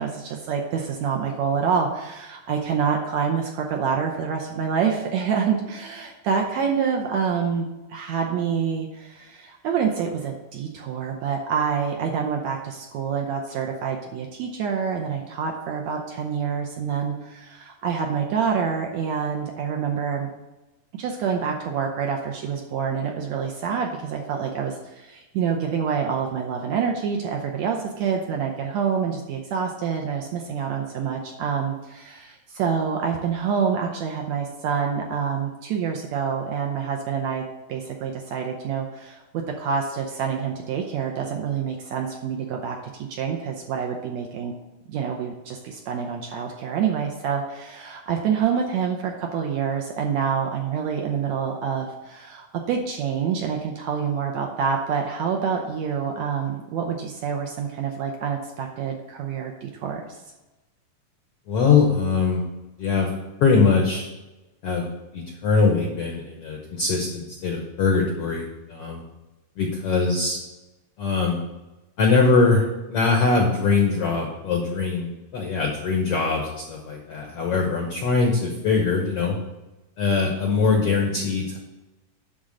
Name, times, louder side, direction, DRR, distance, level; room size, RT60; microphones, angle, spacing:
voice 1, 0.0-20.3 20.9-44.5 44.9-60.2, right 6 dB, 80° right, 2 dB, 1.6 m, -27 dB
voice 2, 61.5-62.4 62.8-63.1 63.4-64.1 64.6-64.8 65.1-68.4 68.7-69.0 69.6-70.4 71.0-71.4 72.0-72.6 72.9-79.4 80.0-81.6, left 4 dB, 75° left, 1 dB, 1.4 m, -22 dB
11.0 x 3.8 x 6.4 m, 1.1 s
omnidirectional pair, 4.1 m